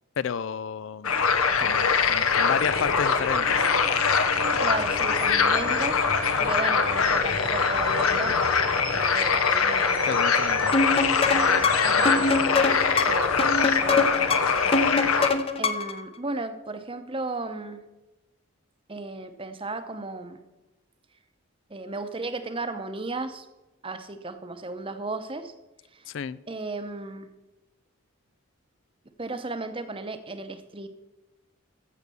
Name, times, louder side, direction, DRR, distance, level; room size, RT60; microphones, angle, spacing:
voice 1, 0.2-1.2 1.6-3.6 10.0-10.7 26.1-26.4, left 7 dB, 60° left, 18 dB, 0.4 m, -31 dB
sound 1, 1.0-15.3, left 5 dB, 85° left, 1.1 m, -23 dB
sound 2, 2.6-12.5, right 4 dB, 55° right, 1.0 m, -40 dB
voice 2, 4.6-6.0 6.4-8.3 8.9-10.0 10.9-13.4 13.8-14.9 15.6-17.8 18.9-20.4 21.7-23.4 23.8-25.5 26.5-27.3 29.2-30.9, right 3 dB, 25° right, 9 dB, 0.8 m, -35 dB
sound 3, 10.7-16.0, left 3 dB, 25° left, 0.7 m, -25 dB
14.5 x 6.7 x 6.9 m, 1.0 s
head